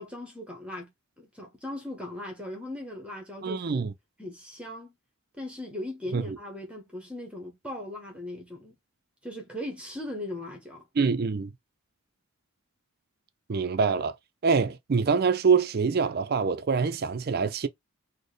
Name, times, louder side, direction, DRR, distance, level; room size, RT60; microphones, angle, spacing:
voice 1, 0.0-3.8 4.2-4.9 5.4-8.8 9.2-10.8, left 1 dB, 5° right, 0.8 m, -38 dB
voice 2, 3.4-3.9 6.1-6.4 11.0-11.5 13.5-14.1 14.4-17.7, right 5 dB, 45° right, 0.4 m, -25 dB
4.1 x 2.1 x 3.2 m
head